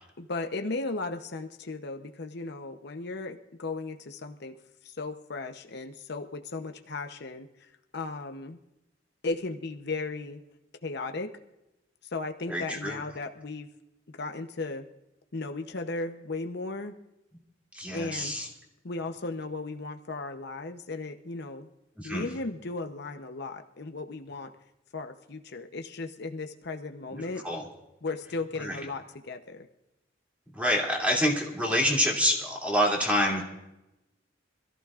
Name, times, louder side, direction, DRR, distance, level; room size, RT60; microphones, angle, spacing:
voice 1, 0.2-4.5 4.8-8.6 9.2-10.4 10.8-11.3 12.1-13.7 14.1-14.8 15.3-17.0 17.9-18.3 18.8-21.7 22.0-24.5 24.9-27.4 28.0-29.7, left 3 dB, 60° left, 6 dB, 0.9 m, -36 dB
voice 2, 12.5-13.0 17.7-18.5 22.0-22.2 27.4-27.6 28.6-28.8 30.5-33.4, equal, 5° right, -2 dB, 2.8 m, -27 dB
25.5 x 14.5 x 2.5 m, 0.92 s
head